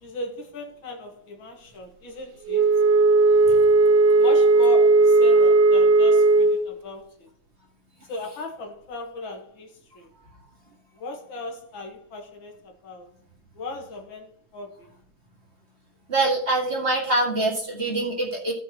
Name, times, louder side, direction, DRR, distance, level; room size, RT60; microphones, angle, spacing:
voice 1, 0.0-2.7 4.2-7.3 8.1-10.1 11.0-13.1 13.6-14.9, left 2 dB, 90° left, 2.3 m, -37 dB
Wind instrument woodwind instrument, 2.5-6.6, right 3 dB, 70° right, 1.4 m, -16 dB
voice 2, 16.1-18.5, right 2 dB, 30° right, 2.2 m, -24 dB
16.0 x 5.8 x 3.0 m
omnidirectional pair, 2.1 m